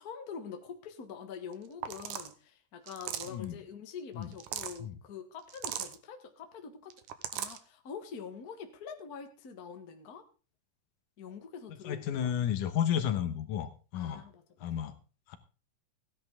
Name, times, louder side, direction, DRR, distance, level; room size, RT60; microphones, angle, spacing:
voice 1, 0.0-6.9 7.3-10.2 11.2-12.3 13.9-14.8, left 6 dB, 40° left, 6 dB, 1.5 m, -45 dB
sound 1, 1.5-1.6 1.8-2.3 2.9-3.4 4.2-4.8 5.5-6.0 6.9-7.6, right 10 dB, 75° right, 2.4 m, -38 dB
voice 2, 3.3-3.6 4.2-4.3 4.8-4.9 11.8-14.2 14.6-14.9 15.3-15.4, left 9 dB, 80° left, 10 dB, 2.7 m, -32 dB
16.0 x 10.5 x 3.6 m, 0.34 s
omnidirectional pair, 3.7 m